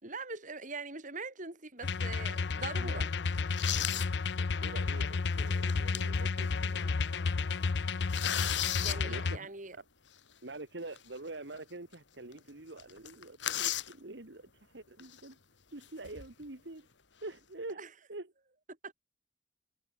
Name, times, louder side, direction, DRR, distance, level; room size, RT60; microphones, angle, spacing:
voice 1, 0.0-3.1 8.8-9.8 17.8-17.9 18.8-18.9, right 3 dB, 45° right, 4.6 m, -42 dB
sound 1, 1.8-9.4, left 4 dB, 70° left, 0.6 m, -32 dB
sound 2, 2.0-2.2 2.7-2.8 3.3-4.1 4.6-4.7 5.5-6.2 6.6-6.7 7.0-7.3 7.6-9.0 11.0-11.1 11.5-11.6 11.9-12.0 12.3-12.5 12.8-13.9 15.0-15.2 15.8-16.4, left 11 dB, 85° left, 2.8 m, -35 dB
voice 2, 2.7-3.1 4.4-6.9 9.0-9.8 10.4-15.4 15.7-16.9 17.2-17.8 18.1-18.3, right 2 dB, 75° right, 1.9 m, -46 dB
head